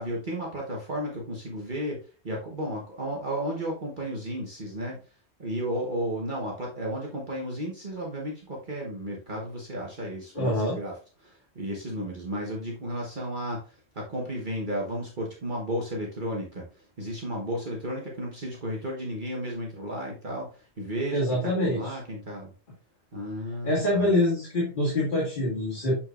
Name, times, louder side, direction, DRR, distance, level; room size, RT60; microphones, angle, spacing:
voice 1, 0.0-5.0 5.4-22.5 23.1-24.1, equal, 45° right, -2 dB, 1.4 m, -33 dB
voice 2, 10.3-10.8 21.1-21.8 23.6-26.0, left 1 dB, 45° left, -5 dB, 2.3 m, -25 dB
6.7 x 5.9 x 2.5 m, 0.35 s
omnidirectional pair, 1.2 m